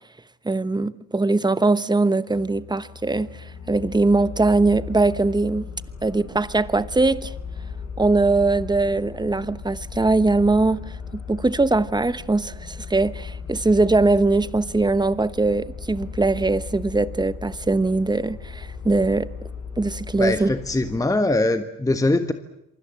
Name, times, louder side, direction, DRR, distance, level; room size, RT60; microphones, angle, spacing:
voice 1, 0.4-5.7 6.0-7.3 8.0-10.8 11.1-19.3 19.8-20.5, right 3 dB, 15° right, 1.0 m, -21 dB
sound 1, 2.3-21.0, left 5 dB, 55° left, 5.8 m, -37 dB
voice 2, 20.2-22.3, left 2 dB, 10° left, 1.4 m, -22 dB
27.5 x 24.0 x 7.7 m
cardioid pair, 90°, 30 cm